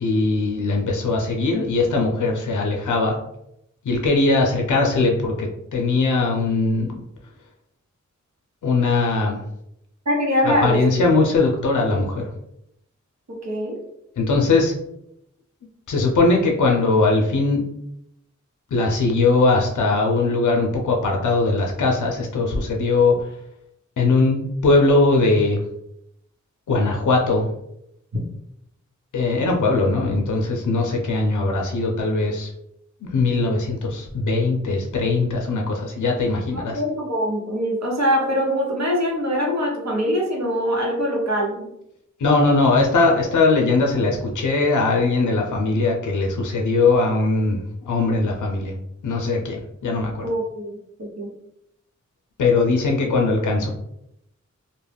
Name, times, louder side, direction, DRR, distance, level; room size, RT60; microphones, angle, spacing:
voice 1, 0.0-3.2 3.9-6.9 8.6-9.4 10.4-12.3 14.2-14.7 15.9-17.6 18.7-23.2 24.0-25.6 26.7-27.5 29.1-32.5 33.1-36.8 42.2-47.6 47.9-48.7 49.0-49.6 49.8-50.3 52.4-53.7, left 3 dB, 80° left, 1 dB, 0.5 m, -20 dB
voice 2, 10.1-10.9 13.4-13.8 36.5-41.7 50.2-51.3 53.1-53.2, equal, 60° right, -1 dB, 0.9 m, -23 dB
2.3 x 2.0 x 3.3 m, 0.79 s
cardioid pair, 45°, 30 cm